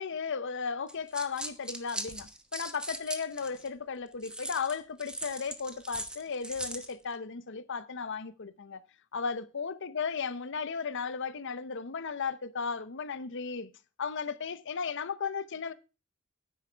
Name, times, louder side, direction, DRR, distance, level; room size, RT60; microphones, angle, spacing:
voice 1, 0.0-8.8 9.1-13.7 14.0-15.7, left 5 dB, 60° left, 0.8 m, -35 dB
sound 1, 0.9-3.7 4.2-6.9, right 1 dB, 5° right, 1.0 m, -40 dB
9.6 x 8.9 x 4.5 m
head